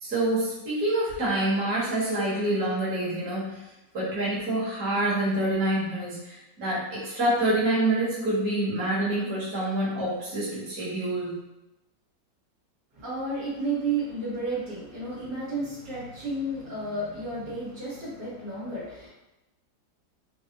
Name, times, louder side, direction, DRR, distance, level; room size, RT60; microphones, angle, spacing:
voice 1, 0.0-3.6 3.9-11.3, right 1 dB, 55° right, -10 dB, 1.8 m, -27 dB
voice 2, 13.0-19.1, right 2 dB, 70° right, -10 dB, 2.0 m, -32 dB
4.7 x 2.0 x 2.9 m, 0.98 s
omnidirectional pair, 2.0 m